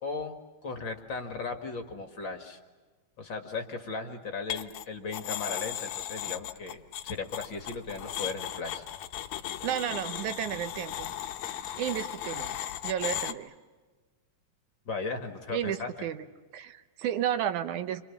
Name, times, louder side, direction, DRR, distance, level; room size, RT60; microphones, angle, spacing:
voice 1, 0.0-2.6 3.2-8.9 14.9-15.9, left 4 dB, 45° left, 5 dB, 2.1 m, -37 dB
sound 1, 4.5-4.8 5.1-13.3, left 11 dB, 70° left, 2.2 m, -36 dB
voice 2, 9.6-11.1 11.8-13.5 15.5-16.2 16.5-18.0, right 10 dB, 80° right, 10 dB, 2.4 m, -32 dB
29.5 x 25.0 x 7.2 m, 1.3 s
omnidirectional pair, 3.5 m